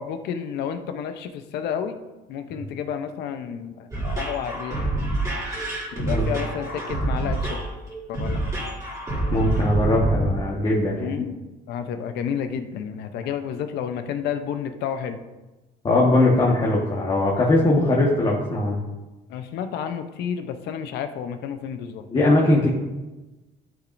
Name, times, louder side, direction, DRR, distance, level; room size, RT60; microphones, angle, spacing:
voice 1, 0.0-2.0 2.3-4.9 5.9-7.6 8.1-8.5 11.0-11.3 11.7-15.2 19.3-22.1, left 8 dB, 80° left, 8 dB, 0.8 m, -31 dB
sound 1, 3.9-10.4, right 2 dB, 20° right, 2.7 m, -27 dB
voice 2, 9.3-11.1 15.8-18.8 22.1-22.7, left 2 dB, 30° left, -3 dB, 1.5 m, -20 dB
11.5 x 6.1 x 2.6 m, 1.1 s
cardioid pair, 110°, 17 cm